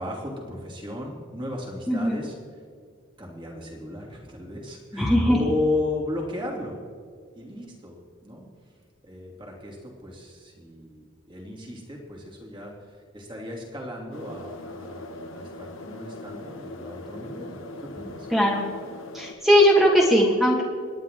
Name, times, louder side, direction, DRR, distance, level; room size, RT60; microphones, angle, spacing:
voice 1, 0.0-2.3 3.2-6.8 7.3-8.5 9.0-18.3, left 2 dB, 25° right, -2 dB, 2.8 m, -34 dB
voice 2, 1.9-2.2 4.9-5.4 18.3-18.6 19.1-20.6, equal, ahead, -3 dB, 1.8 m, -19 dB
sound 1, 14.1-19.3, left 2 dB, 85° left, 1.5 m, -40 dB
28.5 x 10.5 x 3.7 m, 2.1 s
head